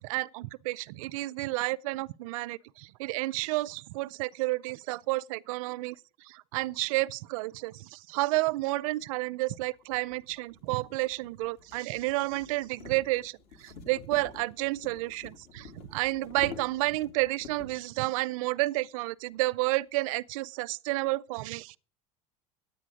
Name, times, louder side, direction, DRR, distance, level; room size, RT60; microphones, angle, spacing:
voice 1, 0.0-6.0 6.2-21.8, right 21 dB, 85° right, 0.5 m, -31 dB
sound 1, 9.0-9.1 9.8-17.9, left 5 dB, 60° left, 2.5 m, -48 dB
10.0 x 9.2 x 6.2 m
supercardioid pair, 130°, 17 cm